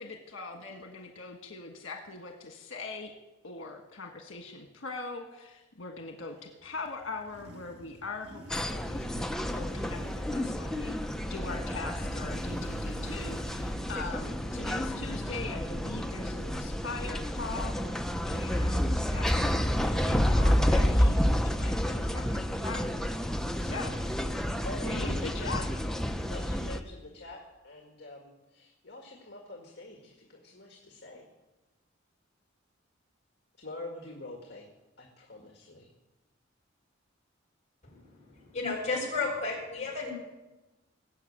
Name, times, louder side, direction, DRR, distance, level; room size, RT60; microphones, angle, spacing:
voice 1, 0.0-3.1 3.4-11.0 11.3-18.0 18.3-22.9 23.2-24.1 24.8-25.6, left 3 dB, 85° left, 2 dB, 1.5 m, -41 dB
Motorcycle, 6.4-19.1, right 1 dB, 65° right, 1.8 m, -50 dB
sound 1, 8.5-26.8, equal, 5° left, 0.7 m, -30 dB
voice 2, 24.6-25.7 26.3-31.2 33.6-34.7 35.0-35.9, left 2 dB, 55° left, 1 dB, 1.9 m, -45 dB
voice 3, 37.8-40.1, left 3 dB, 35° left, -2 dB, 6.4 m, -33 dB
19.5 x 7.5 x 8.7 m, 1.1 s
head